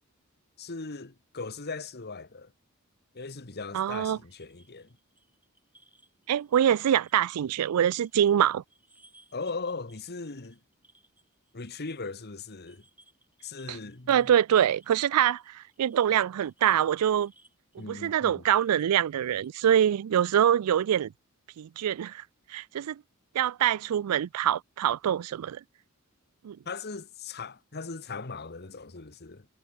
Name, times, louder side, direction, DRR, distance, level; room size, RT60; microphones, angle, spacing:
voice 1, 0.6-2.5 3.1-5.0 9.3-10.6 11.5-12.8 13.4-14.3 17.8-18.4 26.6-29.5, left 4 dB, 50° left, 1.5 m, -39 dB
voice 2, 3.7-4.2 6.3-8.6 13.7-13.8 14.1-17.3 17.8-21.1 21.6-22.2 22.5-23.0 23.3-25.6 26.4-26.6, right 10 dB, 90° right, 0.4 m, -25 dB
sound 1, 4.2-8.4 8.7-12.1 12.4-19.8, right 2 dB, 10° right, 5.8 m, -63 dB
head